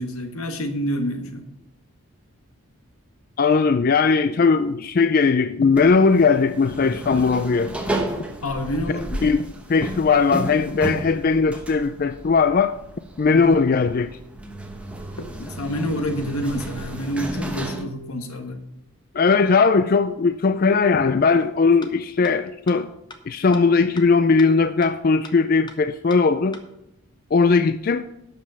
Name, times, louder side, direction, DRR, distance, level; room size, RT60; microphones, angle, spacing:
voice 1, 0.0-1.5 8.4-9.1 13.3-13.6 15.2-18.6, equal, 85° left, 1.5 m, -28 dB
voice 2, 3.4-7.7 9.2-9.4 9.7-12.7 13.2-14.1 19.1-22.9 23.3-26.6 27.3-28.1, left 4 dB, 40° left, 0.3 m, -19 dB
sound 1, 5.7-17.8, right 1 dB, 5° right, 1.0 m, -33 dB
sound 2, 21.4-21.5 21.8-21.9 22.2-22.3 22.7-22.8 23.1-23.2 23.5-23.6 24.0-24.1 24.4-24.5 24.8-24.9 25.2-25.3 25.7-25.8 26.1-26.2 26.5-26.6, left 3 dB, 20° left, 0.8 m, -40 dB
11.5 x 5.3 x 7.0 m
head